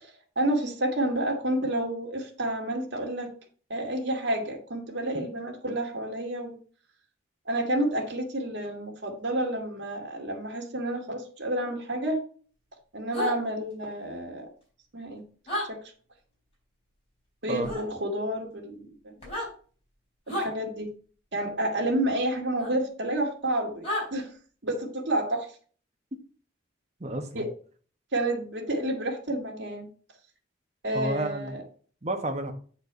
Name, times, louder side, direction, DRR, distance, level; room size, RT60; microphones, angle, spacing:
voice 1, 0.0-3.3 3.7-6.6 7.5-12.2 12.9-14.5 14.9-15.2 15.7-15.8 17.4-19.1 20.3-20.9 21.3-24.3 24.6-25.5 27.3-27.5 28.1-29.9 30.8-31.6, right 1 dB, 65° right, 0 dB, 1.9 m, -30 dB
sound 1, 13.1-13.3 15.5-15.7 17.6-17.8 19.2-19.5 20.3-20.5 22.6-22.7 23.8-24.1, left 1 dB, 30° left, 4.2 m, -30 dB
voice 2, 27.0-27.4 30.9-31.6 32.0-32.5, right 2 dB, 35° right, 4 dB, 1.1 m, -31 dB
8.1 x 4.4 x 5.4 m, 0.43 s
head